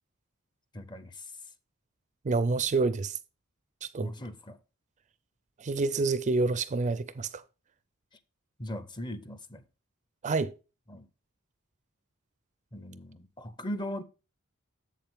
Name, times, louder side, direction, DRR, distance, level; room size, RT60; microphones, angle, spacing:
voice 1, 0.7-1.3 4.0-4.6 8.6-9.6 10.9-11.1 12.7-14.0, left 1 dB, 20° left, 0.6 m, -39 dB
voice 2, 2.2-3.2 3.9-4.1 5.6-7.4 10.2-10.5, right 3 dB, 35° right, 0.4 m, -27 dB
7.3 x 7.3 x 3.4 m
head